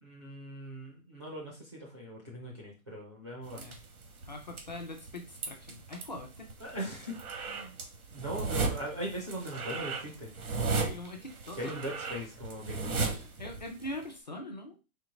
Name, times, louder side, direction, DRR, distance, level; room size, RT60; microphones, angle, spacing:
voice 1, 0.0-3.8 6.6-7.1 7.4-7.8 8.1-10.3 11.6-13.0, equal, 20° right, -2 dB, 0.4 m, -40 dB
sound 1, 3.5-14.1, right 4 dB, 85° right, 1.4 m, -36 dB
voice 2, 4.3-6.5 10.8-11.8 13.4-14.8, left 1 dB, 35° left, 3 dB, 0.5 m, -42 dB
4.5 x 2.5 x 3.8 m, 0.29 s
hypercardioid pair, 170°, 43 cm